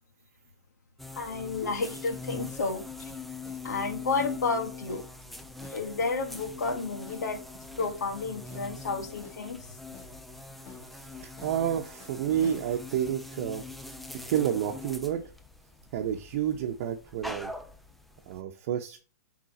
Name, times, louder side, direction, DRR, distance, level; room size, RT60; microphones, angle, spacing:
sound 1, 1.0-18.4, left 3 dB, ahead, 0.4 m, -43 dB
voice 1, 1.2-3.1 3.6-5.0 5.7-7.4 7.8-9.7, left 4 dB, 90° left, 1.9 m, -31 dB
sound 2, 3.1-12.7, left 4 dB, 30° left, 4.0 m, -54 dB
voice 2, 10.9-13.9 14.2-15.3 15.9-17.5 18.3-19.0, right 10 dB, 45° right, 0.9 m, -30 dB
7.8 x 3.8 x 4.2 m
hypercardioid pair, 150°, 9 cm